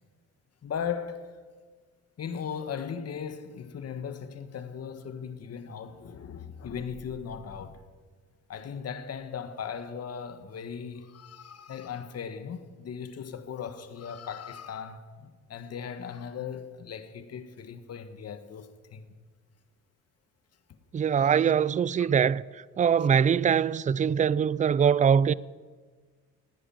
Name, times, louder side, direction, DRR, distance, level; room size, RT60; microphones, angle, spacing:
voice 1, 0.6-1.3 2.2-7.8 8.5-19.0 21.2-21.5 22.0-22.2 24.8-24.9, left 7 dB, 55° left, 1.6 m, -38 dB
voice 2, 20.9-22.4 22.8-25.3, right 7 dB, 25° right, 0.4 m, -23 dB
15.0 x 10.0 x 8.8 m
cardioid pair, 90°, 30 cm